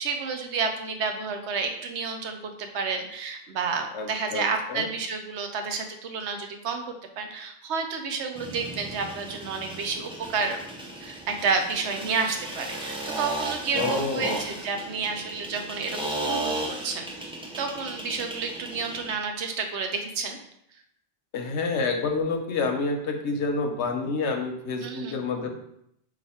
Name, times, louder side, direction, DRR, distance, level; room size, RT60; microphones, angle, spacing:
voice 1, 0.0-6.8 7.2-10.6 11.0-20.4 24.8-25.2, right 4 dB, 90° right, 5 dB, 1.0 m, -30 dB
voice 2, 3.9-4.9 13.7-14.4 21.3-25.6, left 4 dB, 90° left, 4 dB, 1.0 m, -28 dB
sound 1, 8.3-19.1, right 2 dB, 5° right, 0.5 m, -35 dB
4.9 x 2.5 x 4.2 m, 0.75 s
omnidirectional pair, 1.1 m